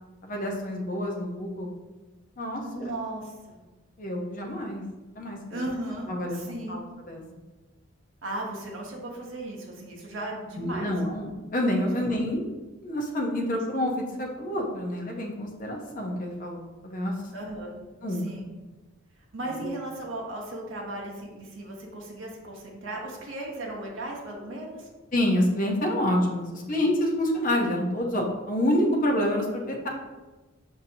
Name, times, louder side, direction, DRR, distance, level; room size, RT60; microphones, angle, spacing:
voice 1, 0.2-1.7 2.4-2.9 4.0-4.8 5.2-5.6 6.1-6.8 7.1-7.2 10.6-12.5 12.8-17.1 18.0-18.2 19.5-19.7 25.1-29.9, left 1 dB, 40° left, 0 dB, 0.6 m, -28 dB
voice 2, 2.6-3.6 5.5-6.8 8.2-10.9 17.3-17.8 18.1-18.5 19.3-24.9, right 1 dB, 65° right, -2 dB, 0.8 m, -36 dB
5.5 x 2.7 x 2.6 m, 1.2 s
head